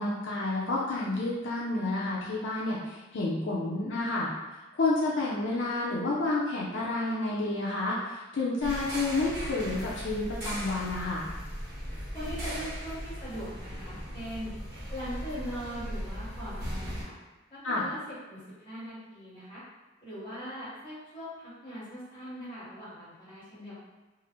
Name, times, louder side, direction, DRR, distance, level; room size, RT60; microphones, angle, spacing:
voice 1, 0.0-4.3 4.8-11.2 17.6-17.8, left 2 dB, 75° left, -5 dB, 0.6 m, -30 dB
sound 1, 8.6-17.0, equal, 55° right, 0.9 m, -38 dB
voice 2, 12.1-14.5 14.9-17.1 17.5-19.6 20.0-23.8, equal, 25° left, -11 dB, 1.4 m, -41 dB
3.6 x 2.0 x 3.0 m, 1.2 s
head